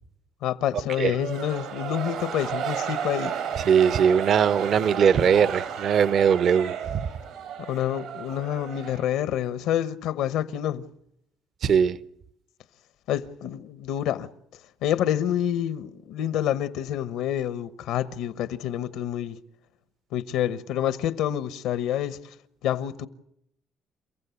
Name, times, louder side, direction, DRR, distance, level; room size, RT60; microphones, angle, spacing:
voice 1, 0.4-3.3 7.7-10.8 13.1-14.3 14.8-19.4 20.1-22.2 22.6-23.1, left 11 dB, 85° left, 1.0 m, -27 dB
sound 1, 1.1-9.5, right 8 dB, 80° right, 4.5 m, -33 dB
voice 2, 3.7-7.0 11.6-12.0, right 7 dB, 55° right, 0.9 m, -20 dB
29.5 x 15.0 x 8.3 m
cardioid pair, 110°, 0 cm